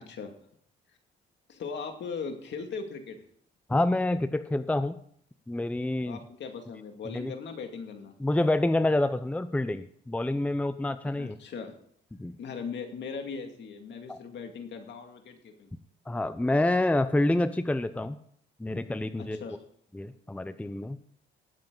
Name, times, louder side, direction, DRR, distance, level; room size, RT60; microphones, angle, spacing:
voice 1, 1.5-3.2 6.1-8.1 11.2-11.7 12.4-15.7 19.3-19.6, left 5 dB, 65° left, 5 dB, 2.3 m, -39 dB
voice 2, 3.7-5.0 5.5-6.2 7.0-7.3 8.2-11.3 12.2-12.4 14.1-14.2 16.1-18.2 18.6-19.4 19.9-21.0, left 1 dB, 5° left, 11 dB, 0.6 m, -27 dB
19.0 x 7.7 x 3.9 m, 0.63 s
cardioid pair, 90°, 20 cm